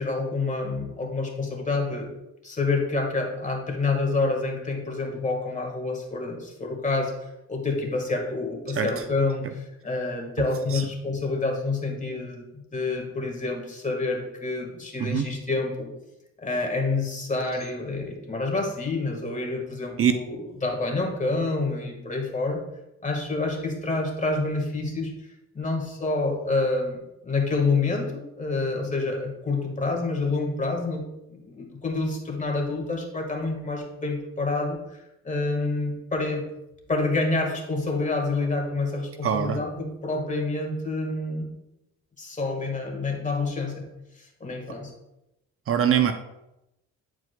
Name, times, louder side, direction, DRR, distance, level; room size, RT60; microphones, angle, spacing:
voice 1, 0.0-2.1 2.4-7.1 7.5-15.9 16.4-22.6 23.0-25.1 25.5-27.0 27.2-34.8 35.2-36.4 36.9-41.5 42.2-43.9 44.4-44.9, left 3 dB, 25° left, 2 dB, 1.6 m, -28 dB
voice 2, 15.0-15.3 20.0-20.1 39.2-39.6 45.7-46.1, right 9 dB, 50° right, 8 dB, 0.5 m, -22 dB
9.5 x 4.6 x 2.2 m, 0.89 s
cardioid pair, 90°, 30 cm